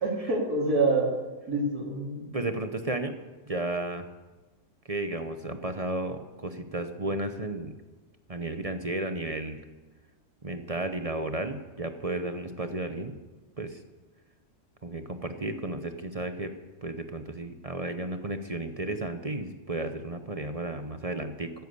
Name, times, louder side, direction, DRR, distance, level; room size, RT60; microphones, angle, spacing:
voice 1, 0.0-1.1 1.5-2.4, right 3 dB, 80° right, -2 dB, 4.0 m, -26 dB
voice 2, 2.3-3.2 3.5-4.1 4.9-7.7 8.3-9.6 10.4-13.1 13.6-13.8 14.8-16.5 16.8-21.5, right 2 dB, 30° right, 8 dB, 0.7 m, -33 dB
14.0 x 10.5 x 8.1 m, 1.2 s
omnidirectional pair, 1.6 m